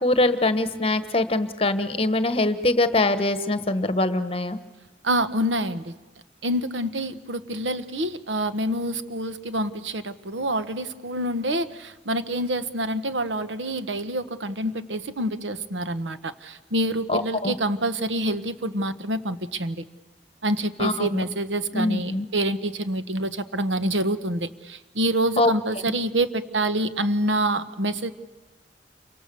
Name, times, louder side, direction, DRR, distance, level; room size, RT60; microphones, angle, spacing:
voice 1, 0.0-4.6 17.1-17.5 20.8-21.2 21.7-22.3 25.4-25.5, left 2 dB, 30° left, 10 dB, 1.2 m, -23 dB
voice 2, 5.0-5.9 6.4-19.8 20.4-28.1, right 1 dB, 90° right, 11 dB, 1.3 m, -27 dB
28.0 x 24.5 x 6.9 m, 1.2 s
head